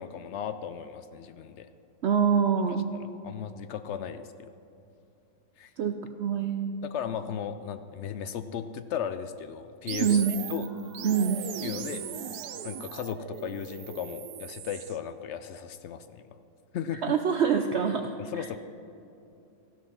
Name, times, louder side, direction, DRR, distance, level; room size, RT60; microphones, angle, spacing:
voice 1, 0.0-1.7 3.0-4.5 5.6-5.7 6.8-10.2 10.5-10.7 11.6-12.0 12.6-16.2 16.7-17.2 18.2-18.6, left 8 dB, 75° left, 10 dB, 0.6 m, -36 dB
voice 2, 2.0-2.9 5.8-6.9 10.0-10.4 11.0-11.4 16.9-18.5, right 7 dB, 65° right, 6 dB, 0.7 m, -26 dB
sound 1, 9.9-15.0, right 8 dB, 85° right, 1.3 m, -38 dB
14.5 x 12.5 x 4.3 m, 2.8 s
omnidirectional pair, 1.7 m